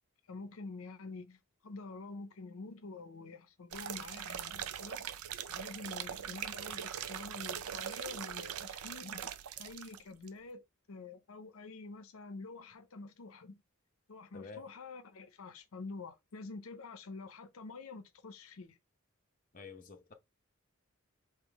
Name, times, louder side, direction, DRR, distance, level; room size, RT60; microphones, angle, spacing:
voice 1, 0.3-5.1 5.5-13.6 14.1-18.8, left 3 dB, 75° left, 0.6 m, -47 dB
sound 1, 3.7-10.0 10.3-10.4, right 9 dB, 90° right, 0.4 m, -41 dB
voice 2, 19.5-20.1, left 5 dB, 40° left, 0.7 m, -48 dB
3.7 x 2.9 x 4.6 m
head